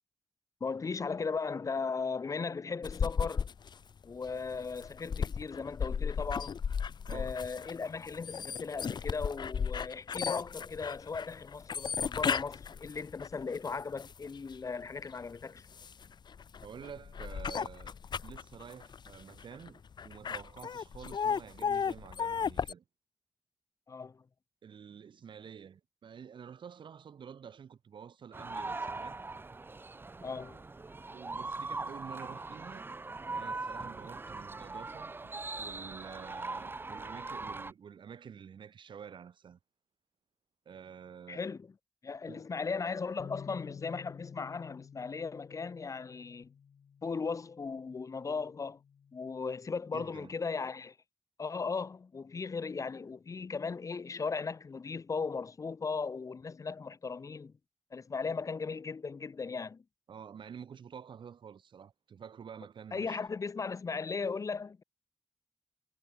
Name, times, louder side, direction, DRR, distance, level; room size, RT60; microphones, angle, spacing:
voice 1, 0.6-3.5 4.0-6.6 7.1-15.7 23.9-24.2 30.2-30.6 41.3-41.7 42.0-46.5 47.0-48.8 49.1-51.0 51.4-57.6 57.9-59.8 62.9-64.8, left 5 dB, 45° left, 2.5 m, -37 dB
sound 1, 2.8-14.6 15.1-22.7, left 6 dB, 65° left, 2.9 m, -35 dB
voice 2, 16.6-18.0 18.2-22.8 24.6-29.2 31.1-32.9 33.3-35.3 35.6-39.6 40.6-41.4 42.3-42.5 49.9-50.3 60.1-63.2, right 7 dB, 90° right, 4.6 m, -49 dB
sound 2, 28.3-37.7, right 3 dB, 25° right, 5.2 m, -41 dB
Bass guitar, 43.2-49.4, left 7 dB, 80° left, 7.1 m, -52 dB
wide cardioid pair, 155°, 8 cm